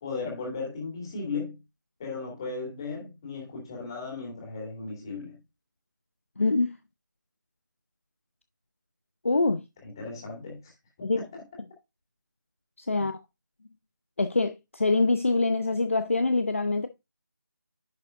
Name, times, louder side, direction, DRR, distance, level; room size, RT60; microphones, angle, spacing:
voice 1, 0.0-1.6 2.0-5.4 9.8-10.7 11.0-11.4 12.9-13.1, left 4 dB, 15° left, 2.5 m, -36 dB
voice 2, 6.4-6.8 9.2-9.6 11.0-11.2 12.8-13.2 14.2-16.9, left 3 dB, 40° left, 0.6 m, -25 dB
10.5 x 5.2 x 2.5 m
figure-of-eight pair, 175°, 10 cm